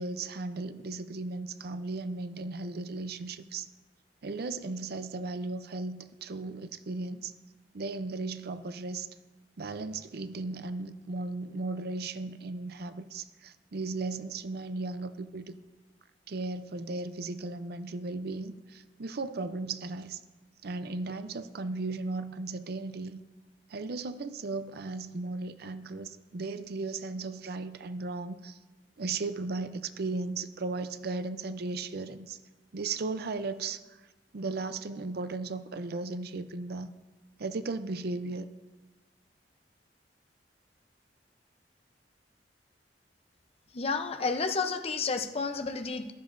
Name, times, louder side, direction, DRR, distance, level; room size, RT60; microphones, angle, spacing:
voice 1, 0.0-3.7 4.2-7.3 7.7-9.1 9.6-15.5 16.3-20.2 20.6-23.2 23.7-28.6 29.0-32.4 32.7-34.0 34.3-36.9 37.4-38.5, right 3 dB, 60° right, 12 dB, 0.5 m, -36 dB
voice 2, 43.7-46.1, left 4 dB, 35° left, 7 dB, 0.6 m, -31 dB
15.0 x 12.5 x 2.6 m, 1.2 s
head